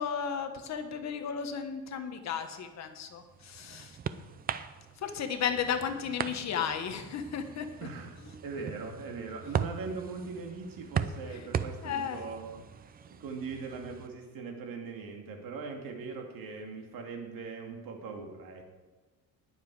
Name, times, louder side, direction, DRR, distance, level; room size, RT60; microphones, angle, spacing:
voice 1, 0.0-4.0 5.0-7.7 8.2-8.3 9.4-9.5 11.3-11.5 11.8-12.2, left 7 dB, 45° left, 7 dB, 1.3 m, -34 dB
sound 1, 3.0-14.1, right 7 dB, 25° right, 0.4 m, -39 dB
voice 2, 7.8-8.1 8.4-12.6 13.2-18.6, right 4 dB, 65° right, 2 dB, 2.5 m, -40 dB
19.5 x 7.3 x 4.9 m, 1.3 s
cardioid pair, 165°, 36 cm